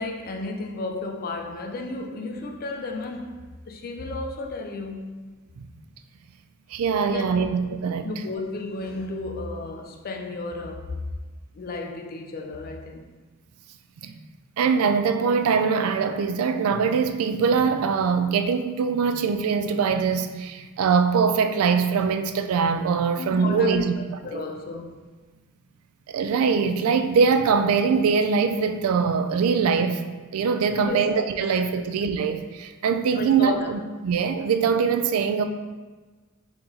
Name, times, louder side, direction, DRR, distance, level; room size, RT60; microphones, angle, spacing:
voice 1, 0.0-5.1 7.0-7.4 8.0-11.0 11.5-13.1 23.2-25.0 30.8-31.0 31.5-31.6 33.1-33.8, left 3 dB, 45° left, 0.4 m, -33 dB
voice 2, 6.7-8.1 14.0-14.1 14.6-23.9 24.3-24.4 26.1-30.0 30.3-35.4, right 5 dB, 80° right, 0.3 m, -22 dB
3.8 x 2.9 x 3.8 m
head